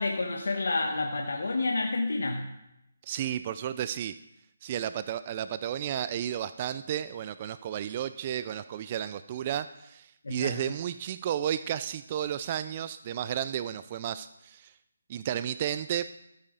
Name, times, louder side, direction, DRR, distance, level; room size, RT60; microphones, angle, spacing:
voice 1, 0.0-2.5 10.2-10.6, left 3 dB, 70° left, 2 dB, 1.2 m, -29 dB
voice 2, 3.0-4.1 4.6-14.7 15.1-16.0, right 10 dB, 35° right, 13 dB, 0.4 m, -33 dB
13.5 x 8.4 x 3.9 m, 0.83 s
figure-of-eight pair, 150°, 0 cm